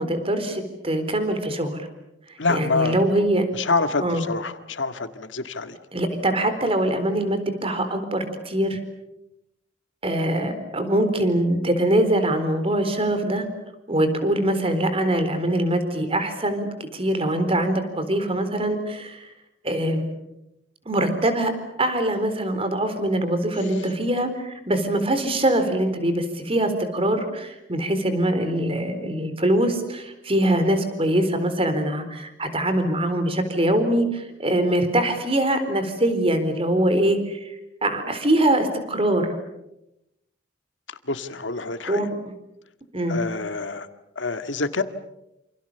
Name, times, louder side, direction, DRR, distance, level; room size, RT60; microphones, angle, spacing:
voice 1, 0.0-1.9 2.5-3.5 4.0-4.2 5.9-8.8 10.0-13.5 13.9-19.3 19.6-20.1 20.9-21.5 21.8-37.6 37.8-39.4 41.9-42.1 42.9-43.2, right 1 dB, 30° right, 9 dB, 4.1 m, -23 dB
voice 2, 2.4-3.1 3.5-5.8 40.9-42.0 43.1-43.9 44.2-44.8, left 3 dB, 85° left, 9 dB, 1.9 m, -26 dB
28.0 x 28.0 x 6.9 m, 0.87 s
head